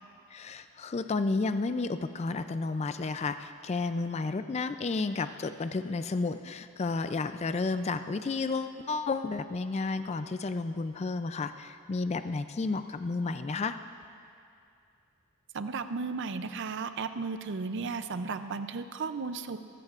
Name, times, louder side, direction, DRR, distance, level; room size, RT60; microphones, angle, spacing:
voice 1, 0.3-13.8, left 3 dB, 30° left, 10 dB, 0.3 m, -32 dB
voice 2, 15.5-19.6, right 4 dB, 55° right, 10 dB, 0.5 m, -34 dB
23.0 x 14.5 x 2.5 m, 2.5 s
head